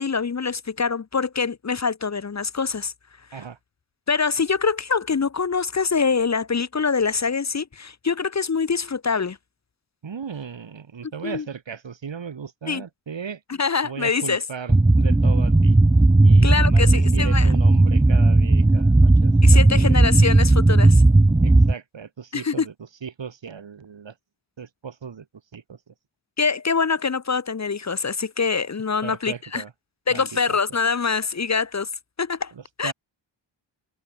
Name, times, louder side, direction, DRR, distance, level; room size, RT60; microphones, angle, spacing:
voice 1, 0.0-2.9 3.3-3.4 4.1-9.4 11.2-11.4 12.7-12.8 13.6-14.4 16.4-17.5 19.4-21.0 22.3-22.6 26.4-29.6 30.1-31.9 32.2-32.5 32.8-32.9, left 5 dB, 35° left, 0.8 m, -24 dB
voice 2, 10.0-13.4 13.8-15.8 16.2-20.1 21.4-22.7 23.0-24.1 24.6-25.3 25.5-25.9 29.0-29.7 30.1-30.6 32.5-32.9, right 6 dB, 75° right, 2.8 m, -36 dB
sound 1, 14.7-21.7, right 2 dB, 10° right, 0.6 m, -15 dB
wide cardioid pair, 105°, 45 cm